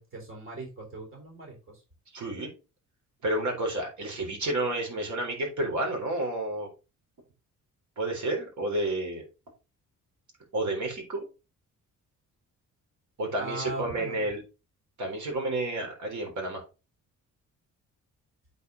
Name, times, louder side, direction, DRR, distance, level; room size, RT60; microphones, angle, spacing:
voice 1, 0.0-1.8 13.4-14.3, right 2 dB, 40° right, 0 dB, 3.8 m, -39 dB
voice 2, 2.1-2.5 3.2-6.7 8.0-9.2 10.5-11.3 13.2-14.4 15.0-16.6, right 1 dB, 60° right, 1 dB, 3.9 m, -30 dB
8.2 x 4.8 x 3.9 m, 0.30 s
cardioid pair, 120°, 33 cm